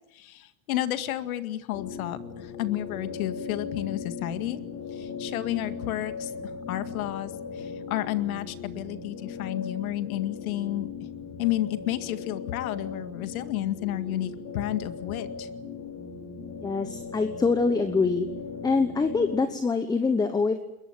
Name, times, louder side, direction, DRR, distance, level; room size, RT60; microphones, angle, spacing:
voice 1, 0.1-4.6 4.9-6.3 6.7-10.9 11.4-15.5, left 14 dB, 75° left, 10 dB, 2.1 m, -31 dB
sound 1, 1.7-19.4, left 5 dB, 40° left, 5.6 m, -38 dB
voice 2, 16.6-18.3 18.6-20.6, left 4 dB, 10° left, 9 dB, 1.1 m, -24 dB
22.0 x 21.5 x 9.3 m, 0.89 s
supercardioid pair, 145°, 43 cm